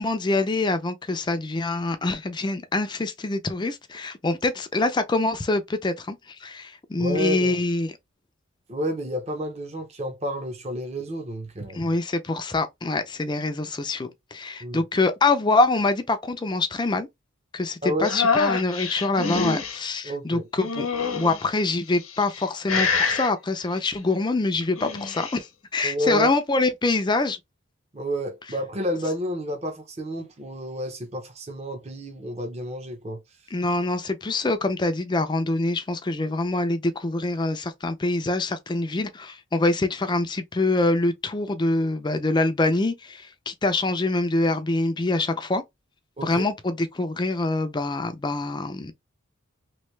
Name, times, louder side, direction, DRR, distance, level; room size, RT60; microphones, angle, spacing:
voice 1, 0.0-7.9 11.7-17.1 17.5-20.9 21.1-25.5 25.7-27.4 33.5-45.6 46.2-48.9, left 2 dB, 20° left, 0.4 m, -25 dB
voice 2, 7.0-7.6 8.7-11.8 14.6-14.8 17.8-18.1 20.0-20.5 25.8-26.3 27.9-33.2 46.2-46.4, equal, 30° right, 0.7 m, -30 dB
sound 1, 18.0-19.8 20.6-21.4 22.1-22.4 22.7-23.3 24.6-25.4, left 5 dB, 80° left, 0.9 m, -25 dB
3.1 x 2.6 x 3.2 m
head